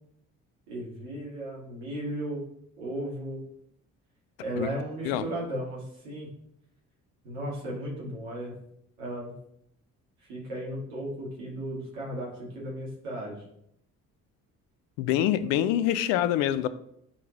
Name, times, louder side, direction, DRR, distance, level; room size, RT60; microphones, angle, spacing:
voice 1, 0.7-2.4 2.8-3.4 4.4-6.3 7.2-8.5 9.0-9.3 10.2-13.4, right 1 dB, 65° right, 2.7 m, -35 dB
voice 2, 15.0-16.7, left 11 dB, 55° left, 0.6 m, -25 dB
9.9 x 4.6 x 2.7 m
figure-of-eight pair, 45°, 43 cm